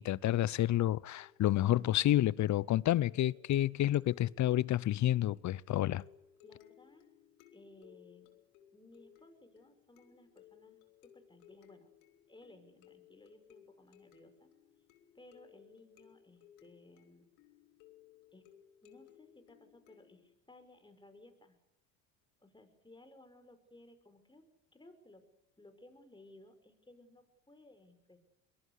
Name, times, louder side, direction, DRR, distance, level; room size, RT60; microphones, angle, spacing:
voice 1, 0.0-6.0, left 13 dB, 45° left, 0.8 m, -29 dB
sound 1, 1.1-20.3, left 11 dB, 75° left, 3.2 m, -62 dB
voice 2, 6.4-7.1 7.5-8.3 8.7-11.9 12.3-14.5 15.1-17.3 18.3-18.4 18.8-21.6 22.4-25.2 25.6-28.2, left 2 dB, 10° left, 5.8 m, -59 dB
23.5 x 22.0 x 8.4 m
hypercardioid pair, 75°, 40 cm